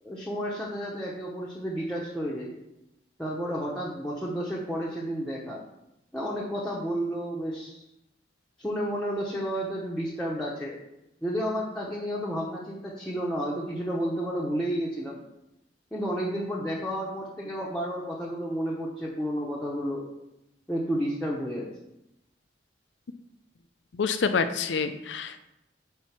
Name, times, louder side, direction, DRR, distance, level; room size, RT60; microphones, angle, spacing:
voice 1, 0.0-2.5 3.2-5.6 6.1-7.8 8.6-10.8 11.2-15.2 15.9-20.0 20.7-21.7, equal, 5° left, -6 dB, 0.8 m, -31 dB
voice 2, 24.0-25.5, left 5 dB, 85° left, 10 dB, 0.5 m, -27 dB
4.6 x 4.3 x 5.7 m, 0.88 s
head